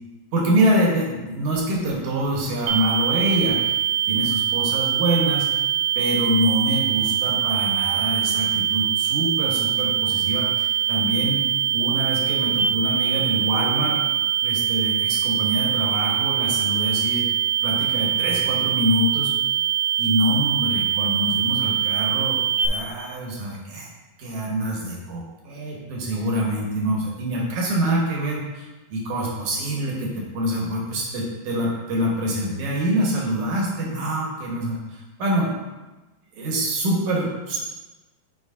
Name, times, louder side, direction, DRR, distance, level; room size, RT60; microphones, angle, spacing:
voice 1, 0.3-3.8 4.1-5.6 6.0-11.4 11.7-14.2 14.4-17.3 17.6-19.4 20.0-23.9 24.2-35.5 36.3-37.6, right 1 dB, 65° right, -3 dB, 2.2 m, -25 dB
sound 1, 2.7-22.7, right 10 dB, 90° right, 2.6 m, -23 dB
9.1 x 5.0 x 2.5 m, 1.1 s
omnidirectional pair, 4.5 m